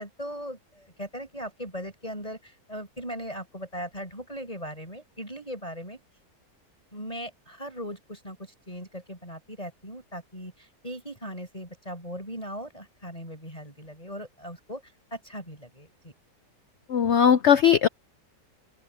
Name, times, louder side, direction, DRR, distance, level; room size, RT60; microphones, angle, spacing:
voice 1, 0.0-6.0 6.9-14.8 15.1-16.1, equal, 20° left, 6.9 m, -39 dB
voice 2, 16.9-17.9, left 8 dB, 90° left, 0.6 m, -19 dB
open air
omnidirectional pair, 1.8 m